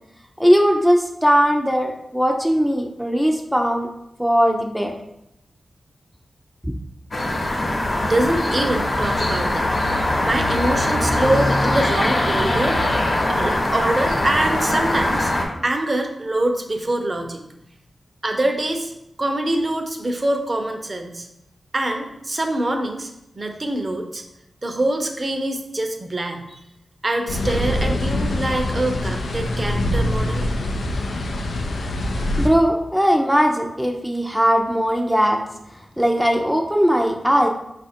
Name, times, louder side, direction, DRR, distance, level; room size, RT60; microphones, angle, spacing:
voice 1, 0.4-3.9 4.2-4.9 6.6-6.7 32.4-35.4 36.0-37.5, equal, 5° right, 2 dB, 0.5 m, -19 dB
sound 1, 7.1-15.4, left 1 dB, 60° left, 1.0 m, -21 dB
voice 2, 7.7-9.8 10.2-15.3 15.6-17.4 18.2-18.9 19.2-21.3 21.7-23.1 23.4-24.2 24.6-26.6 27.0-30.5, right 1 dB, 40° right, 4 dB, 0.7 m, -24 dB
sound 2, 27.3-32.5, left 1 dB, 90° left, 0.5 m, -24 dB
4.7 x 2.5 x 4.3 m, 0.85 s
cardioid pair, 45°, 0 cm